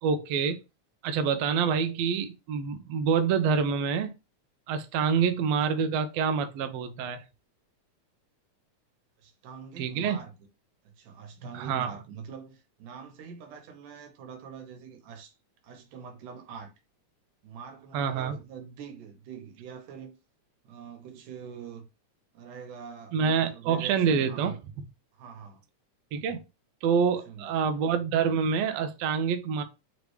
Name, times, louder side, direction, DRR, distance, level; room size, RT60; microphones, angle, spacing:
voice 1, 0.0-0.6 1.0-4.1 4.7-7.2 9.8-10.2 11.5-11.9 17.9-18.4 23.1-24.6 26.1-26.4 26.8-29.6, right 6 dB, 75° right, 1.6 m, -26 dB
voice 2, 9.2-10.3 10.8-15.4 15.6-16.7 17.4-20.2 20.6-21.9 22.3-23.2 23.5-24.5 25.1-25.6 27.0-27.7, right 6 dB, 90° right, 2.6 m, -44 dB
5.2 x 3.1 x 3.1 m
omnidirectional pair, 3.5 m